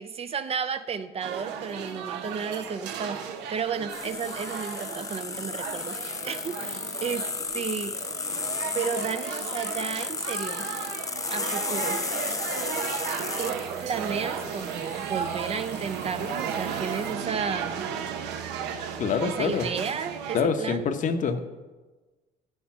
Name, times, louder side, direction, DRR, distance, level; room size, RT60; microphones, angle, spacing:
voice 1, 0.0-8.0 8.7-10.7 11.3-12.1 13.4-17.9 19.2-20.9, right 6 dB, 35° right, 11 dB, 0.5 m, -33 dB
sound 1, 1.2-20.4, right 7 dB, 90° right, 0.9 m, -35 dB
sound 2, 3.9-17.1, left 5 dB, 20° left, 0.4 m, -35 dB
voice 2, 19.0-19.7 20.3-21.5, left 6 dB, 50° left, 7 dB, 0.9 m, -26 dB
13.0 x 5.1 x 5.9 m, 1.2 s
cardioid pair, 110°, 17 cm